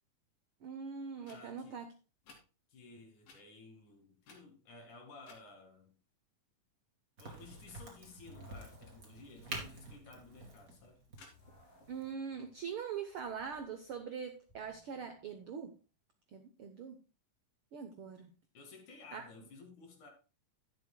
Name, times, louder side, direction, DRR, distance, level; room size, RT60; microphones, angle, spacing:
voice 1, 0.6-1.9 11.9-15.8 16.3-17.0 17.7-18.3 19.1-19.2, right 6 dB, 80° right, 1.2 m, -42 dB
sound 1, 1.2-1.4 2.2-2.4 3.2-3.4 4.2-4.7 5.2-5.4 11.1-12.1, left 4 dB, 85° left, 4.0 m, -59 dB
voice 2, 1.3-1.8 2.7-6.0 7.2-11.0 18.5-20.1, left 3 dB, 65° left, 3.6 m, -55 dB
Crack, 7.2-12.6, right 2 dB, 30° right, 2.5 m, -48 dB
sound 2, 7.4-15.5, left 1 dB, 15° left, 5.7 m, -64 dB
11.5 x 10.5 x 2.2 m
omnidirectional pair, 3.7 m